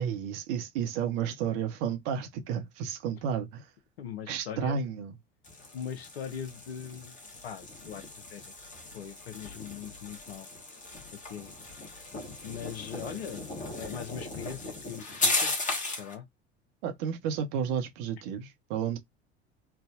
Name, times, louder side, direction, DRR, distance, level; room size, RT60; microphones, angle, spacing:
voice 1, 0.0-3.6 4.3-5.1 13.0-13.1 16.8-19.0, right 7 dB, 50° right, 0.7 m, -32 dB
voice 2, 4.0-4.8 5.7-7.2 7.4-8.0 8.3-8.5 8.9-10.5 11.1-11.5 12.4-15.5 15.9-16.3, left 8 dB, 65° left, 0.7 m, -40 dB
sound 1, 5.4-16.1, left 2 dB, 25° left, 1.0 m, -36 dB
3.3 x 2.1 x 2.4 m
figure-of-eight pair, 70°, 33 cm